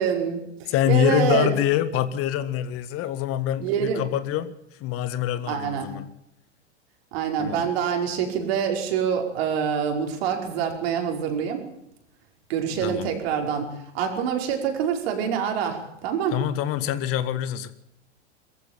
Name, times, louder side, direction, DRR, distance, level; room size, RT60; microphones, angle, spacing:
voice 1, 0.0-1.5 3.6-4.0 5.5-5.9 7.1-11.6 12.5-16.4, right 8 dB, 60° right, 3 dB, 5.2 m, -26 dB
voice 2, 0.7-4.5 4.8-6.1 7.4-7.6 12.7-13.1 16.3-17.7, left 11 dB, 40° left, 13 dB, 1.6 m, -25 dB
21.5 x 15.0 x 9.0 m, 0.81 s
figure-of-eight pair, 95°, 35 cm